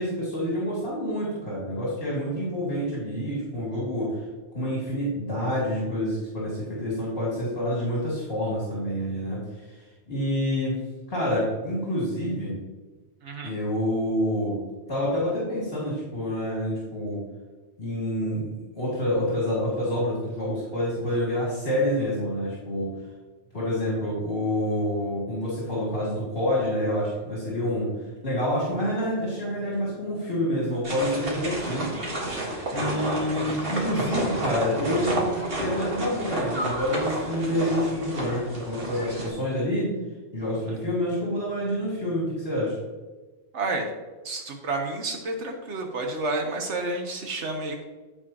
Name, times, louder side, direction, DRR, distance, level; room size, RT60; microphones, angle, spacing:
voice 1, 0.0-4.2 4.5-10.8 11.1-12.5 13.4-14.6 14.9-17.2 17.8-18.5 18.8-22.9 23.5-27.9 28.2-31.9 32.7-39.9 40.3-42.8, equal, 55° left, -7 dB, 2.9 m, -27 dB
voice 2, 13.2-13.5 40.7-40.8 43.5-43.9 44.2-47.8, right 2 dB, 80° right, 3 dB, 1.3 m, -30 dB
sound 1, 30.8-39.3, right 1 dB, 55° right, 1.9 m, -30 dB
14.5 x 4.9 x 2.9 m, 1.3 s
omnidirectional pair, 1.2 m